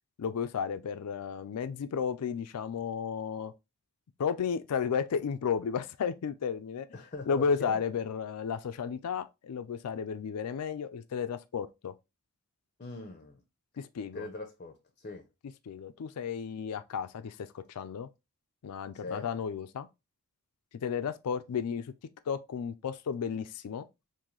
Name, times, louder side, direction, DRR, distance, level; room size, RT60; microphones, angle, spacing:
voice 1, 0.2-3.5 4.2-6.9 7.3-11.9 13.8-14.3 15.7-18.1 18.6-19.9 20.8-21.9 22.3-23.8, left 6 dB, 90° left, 0.4 m, -33 dB
voice 2, 6.9-7.8 12.8-13.4 14.1-15.2 19.0-19.3, left 3 dB, 35° left, 0.5 m, -41 dB
3.8 x 2.6 x 3.0 m
head